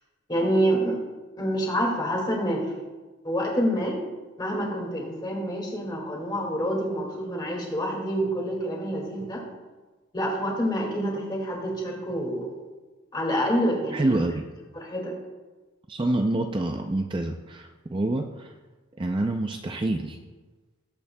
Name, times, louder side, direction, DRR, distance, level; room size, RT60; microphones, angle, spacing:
voice 1, 0.3-1.0 1.4-2.7 3.2-4.0 4.4-9.4 10.1-12.5 13.1-14.2 14.7-15.2, equal, 20° left, -1 dB, 2.1 m, -27 dB
voice 2, 13.9-14.5 15.9-18.5 19.0-20.2, right 2 dB, 25° right, 4 dB, 0.4 m, -27 dB
18.5 x 8.3 x 2.3 m, 1.2 s
head